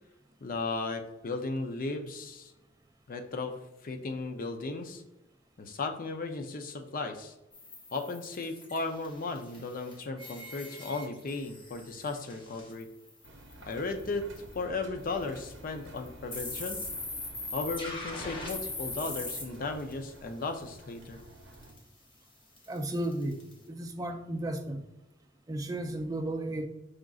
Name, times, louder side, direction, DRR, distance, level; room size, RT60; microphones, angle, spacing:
voice 1, 0.4-2.5 3.1-3.6 3.8-5.0 5.6-7.3 7.9-12.9 13.7-14.3 14.5-16.8 17.5-21.2, left 3 dB, 45° left, 0.5 m, -35 dB
sound 1, 7.5-13.7 14.0-14.1 14.3-14.6 15.2-15.4 16.0-19.9 21.5-21.8 22.6-23.5, left 2 dB, 25° left, 0.9 m, -41 dB
Engine, 13.2-21.7, right 1 dB, 65° right, 0.6 m, -50 dB
voice 2, 22.7-23.4 23.7-24.8 25.5-26.7, right 1 dB, 20° right, 0.4 m, -34 dB
5.0 x 3.7 x 2.4 m
head